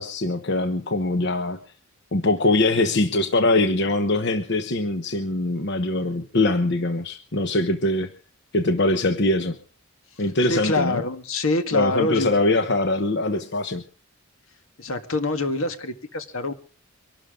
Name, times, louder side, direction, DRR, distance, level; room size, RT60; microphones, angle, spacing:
voice 1, 0.0-1.6 2.1-8.1 8.5-9.6 10.2-11.0 11.7-13.8, left 2 dB, 55° left, 8 dB, 1.1 m, -22 dB
voice 2, 10.5-12.4 14.8-16.5, left 2 dB, 75° left, 9 dB, 1.8 m, -25 dB
24.0 x 12.5 x 3.7 m, 0.37 s
head